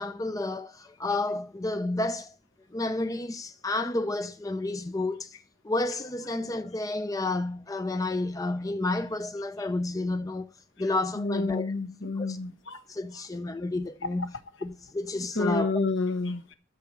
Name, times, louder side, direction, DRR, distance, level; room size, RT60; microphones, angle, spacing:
voice 1, 0.0-2.4 2.7-5.3 5.6-10.5 10.8-11.7 12.1-12.4 12.9-14.3 14.6-15.7, left 2 dB, 15° left, 0.4 m, -30 dB
voice 2, 11.2-12.8 15.3-16.4, left 3 dB, 60° left, 1.2 m, -29 dB
13.5 x 4.5 x 7.1 m
head